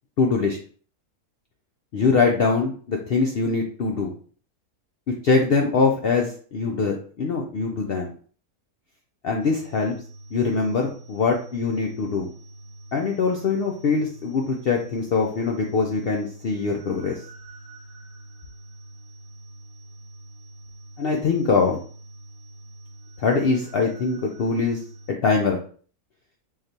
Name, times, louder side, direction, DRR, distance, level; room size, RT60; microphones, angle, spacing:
voice 1, 0.2-0.6 1.9-4.1 5.2-8.1 9.2-9.9 10.3-12.3 12.9-17.2 21.0-21.8 23.2-24.8 25.1-25.6, left 4 dB, 80° left, 1 dB, 0.5 m, -23 dB
sound 1, 9.4-25.1, right 1 dB, 20° right, 0.5 m, -45 dB
3.9 x 3.1 x 2.7 m, 0.44 s
omnidirectional pair, 1.6 m